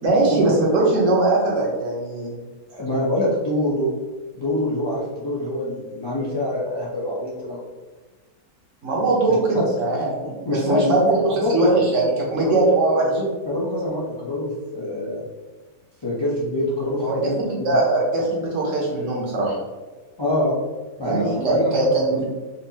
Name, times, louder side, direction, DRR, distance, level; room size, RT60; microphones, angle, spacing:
voice 1, 0.0-2.3 8.8-13.0 17.0-19.6 21.0-22.2, right 2 dB, 60° right, -3 dB, 1.3 m, -21 dB
voice 2, 2.7-3.9 4.3-7.6 9.5-9.7 10.4-11.1 11.4-11.8 12.4-12.6 13.0-15.2 16.0-17.8 20.2-20.6 21.0-21.9, left 1 dB, 35° left, -7 dB, 0.4 m, -25 dB
4.2 x 2.6 x 2.8 m, 1.3 s
omnidirectional pair, 1.6 m